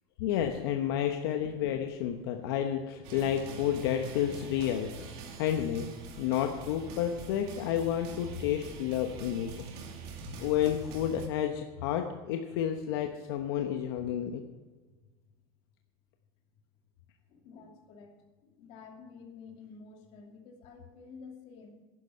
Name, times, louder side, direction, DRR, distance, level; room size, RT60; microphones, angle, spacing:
voice 1, 0.2-5.9 6.2-9.5 10.4-14.4, left 10 dB, 75° left, 4 dB, 1.1 m, -31 dB
sound 1, 3.0-11.3, right 4 dB, 50° right, 2.3 m, -44 dB
voice 2, 17.3-18.1 18.4-21.8, left 5 dB, 50° left, 2 dB, 2.5 m, -50 dB
11.0 x 10.5 x 5.7 m, 1.3 s
supercardioid pair, 150°, 13 cm